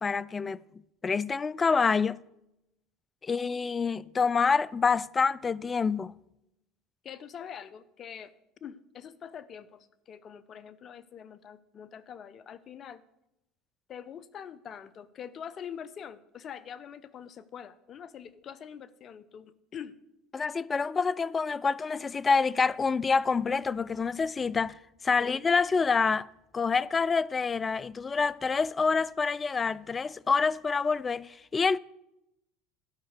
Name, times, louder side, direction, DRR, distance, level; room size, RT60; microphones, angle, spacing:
voice 1, 0.0-2.2 3.2-6.1 20.3-24.8 25.0-26.3 26.5-31.8, left 5 dB, 25° left, 0.3 m, -27 dB
voice 2, 7.0-8.3 8.6-13.0 13.9-20.0 25.2-25.4, left 8 dB, 40° left, 0.7 m, -44 dB
12.0 x 5.8 x 8.1 m
hypercardioid pair, 90°, 0 cm